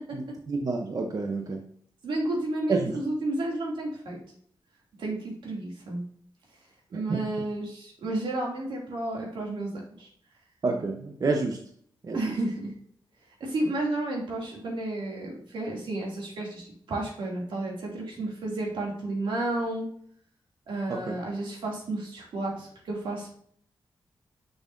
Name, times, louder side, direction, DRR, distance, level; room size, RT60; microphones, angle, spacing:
voice 1, 0.1-1.6 2.7-2.9 6.9-7.2 10.6-11.6 12.0-12.4 21.1-21.2, right 3 dB, 50° right, 2 dB, 0.9 m, -29 dB
voice 2, 2.0-4.2 5.0-6.0 6.9-10.1 12.1-12.7 13.4-16.6 16.9-19.9 20.7-23.3, right 2 dB, 90° right, -2 dB, 2.7 m, -31 dB
6.7 x 6.4 x 2.7 m, 0.62 s
wide cardioid pair, 125°, 8 cm